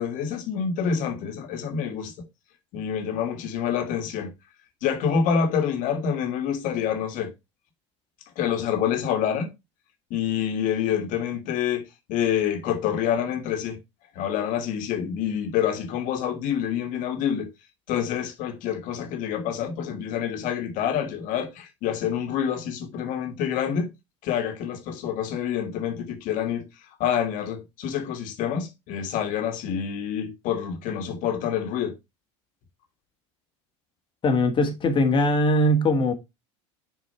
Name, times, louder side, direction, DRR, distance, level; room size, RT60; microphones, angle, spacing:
voice 1, 0.0-2.1 2.7-4.3 4.8-7.3 8.4-9.5 10.1-13.8 14.2-17.5 17.9-23.9 24.2-26.7 27.0-31.9, left 8 dB, 60° left, 1.7 m, -27 dB
voice 2, 34.2-36.1, left 1 dB, 35° left, 1.6 m, -21 dB
6.6 x 4.6 x 4.3 m
supercardioid pair, 110°, 15 cm